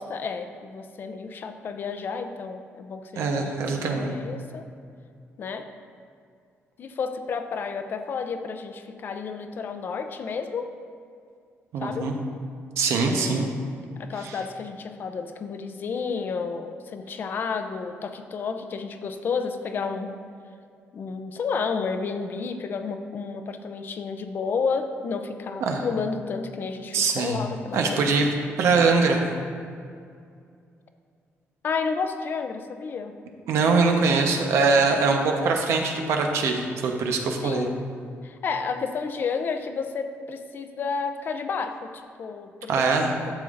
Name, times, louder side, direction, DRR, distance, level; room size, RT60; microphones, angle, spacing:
voice 1, 0.0-4.6 5.4-5.7 6.8-10.8 11.8-12.1 13.0-13.5 14.0-20.2 20.9-28.0 31.6-33.2 37.4-37.9 38.2-43.3, left 5 dB, 45° left, 8 dB, 0.5 m, -31 dB
voice 2, 3.2-4.1 11.7-12.1 12.8-13.5 14.2-14.4 25.7-25.9 26.9-27.4 27.7-28.3 28.6-29.2 33.5-37.7 42.7-43.1, right 4 dB, 75° right, 2 dB, 1.0 m, -22 dB
11.5 x 7.1 x 2.5 m, 2.3 s
cardioid pair, 145°, 5 cm